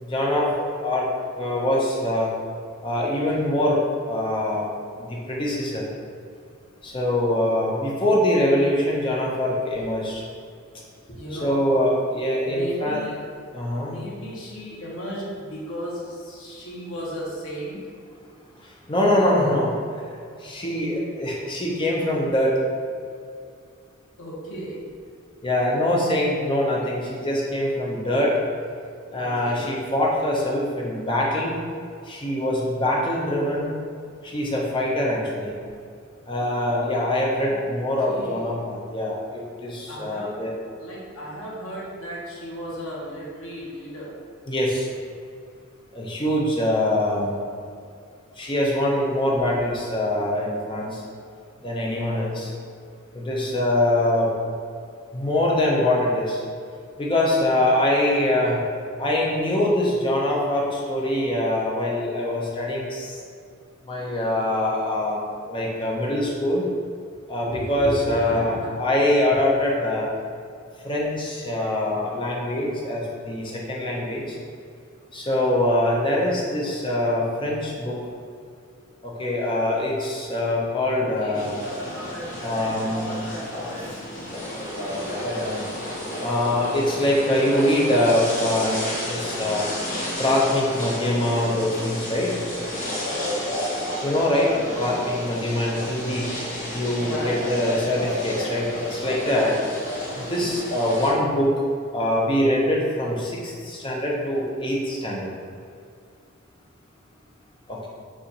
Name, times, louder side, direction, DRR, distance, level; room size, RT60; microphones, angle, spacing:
voice 1, 0.0-1.1 1.4-2.3 2.8-3.8 4.1-4.7 5.0-5.8 6.8-10.2 11.3-13.0 13.5-14.0 18.9-19.7 20.4-22.6 25.4-28.4 29.1-31.5 32.1-33.7 34.2-35.5 36.3-40.5 44.5-44.9 45.9-47.4 48.4-51.0 51.6-52.5 53.1-54.3 55.1-56.4 57.0-58.6 59.0-63.2 63.9-66.6 67.3-70.1 70.8-74.2 75.1-78.0 79.0-81.6 82.4-83.7 84.5-85.7 86.2-89.6 90.2-92.3 94.0-96.3 96.7-99.5 100.2-101.5 101.9-105.3 107.7-107.9, left 1 dB, 25° left, -3 dB, 0.6 m, -23 dB
voice 2, 11.1-11.6 12.5-13.2 13.8-17.8 24.2-24.8 29.2-29.6 37.4-37.6 38.1-38.6 39.9-40.4 40.8-44.1 68.0-68.8 81.0-81.5 82.1-82.2 85.0-85.1 93.0-93.4 97.0-97.7 99.2-99.5, equal, 80° left, -5 dB, 1.1 m, -35 dB
sound 1, 81.3-101.1, left 1 dB, 40° left, 1.2 m, -31 dB
6.4 x 2.5 x 2.8 m, 2.3 s
head